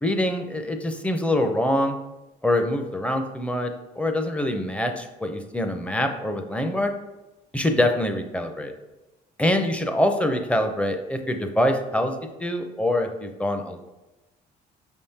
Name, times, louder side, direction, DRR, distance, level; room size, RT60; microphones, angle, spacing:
voice 1, 0.0-2.0 2.4-6.9 7.5-8.7 9.4-12.1 12.4-13.9, left 1 dB, 5° left, 5 dB, 0.5 m, -24 dB
5.1 x 3.5 x 2.8 m, 1.0 s
cardioid pair, 110°, 17 cm